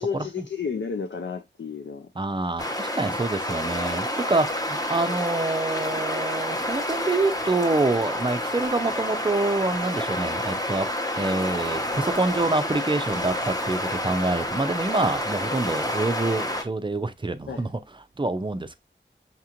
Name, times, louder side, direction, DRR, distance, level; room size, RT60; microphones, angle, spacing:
voice 1, 0.0-2.1 17.5-17.7, left 6 dB, 70° left, 0.4 m, -31 dB
voice 2, 2.2-10.9 11.2-17.7 18.2-18.8, right 2 dB, 25° right, 0.5 m, -26 dB
sound 1, 2.6-16.6, left 1 dB, 20° left, 0.8 m, -29 dB
5.8 x 2.4 x 2.8 m
wide cardioid pair, 55°, 19 cm